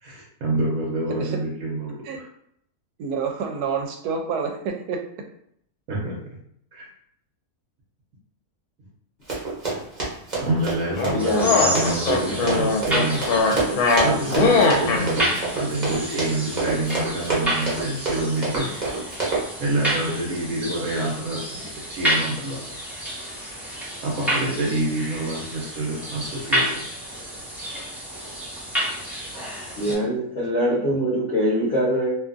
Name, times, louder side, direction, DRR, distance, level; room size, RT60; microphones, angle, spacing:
voice 1, 0.0-2.3 5.9-6.2 6.7-6.9 10.4-13.7 14.0-18.8 19.6-22.6 24.0-26.8, right 1 dB, 70° right, -5 dB, 1.1 m, -27 dB
voice 2, 3.0-5.0, right 5 dB, 90° right, 3 dB, 1.1 m, -28 dB
Run, 9.3-19.4, right 3 dB, 35° right, 0.8 m, -27 dB
sound 1, 10.9-15.0, left 4 dB, 80° left, 1.1 m, -20 dB
voice 3, 11.1-11.4 29.8-32.2, equal, 45° left, -8 dB, 0.9 m, -23 dB
sound 2, 11.2-29.9, equal, ahead, 0.7 m, -30 dB
2.8 x 2.3 x 2.5 m, 0.70 s
omnidirectional pair, 1.6 m